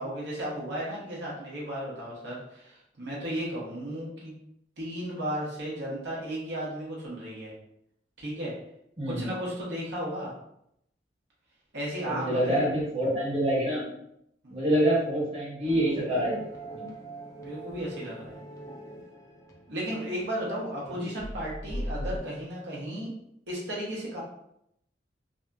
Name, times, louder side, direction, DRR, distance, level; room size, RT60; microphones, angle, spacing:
voice 1, 0.0-4.3 4.8-7.5 8.2-8.5 9.2-10.3 11.7-12.6 14.4-14.6 17.4-18.4 19.7-23.1 23.5-24.2, right 1 dB, 90° right, -5 dB, 0.9 m, -34 dB
voice 2, 12.0-13.9 14.5-16.4 16.7-16.9 20.9-21.1 22.0-22.1, right 1 dB, 35° right, -7 dB, 1.0 m, -27 dB
sound 1, 15.6-20.8 21.2-22.2, right 1 dB, 20° left, 0.4 m, -40 dB
2.7 x 2.5 x 2.2 m, 0.75 s
head